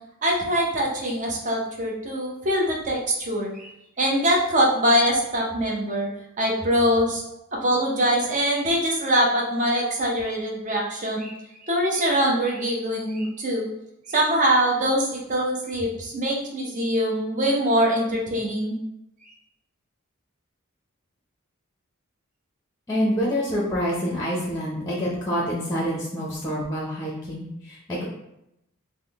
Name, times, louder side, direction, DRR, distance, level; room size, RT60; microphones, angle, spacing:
voice 1, 0.2-3.7 4.0-6.1 6.4-7.2 7.6-11.3 11.6-13.7 14.1-18.8, equal, 35° right, -2 dB, 0.6 m, -23 dB
voice 2, 22.9-28.0, equal, 15° left, -4 dB, 0.6 m, -27 dB
3.6 x 2.1 x 3.4 m, 0.83 s
head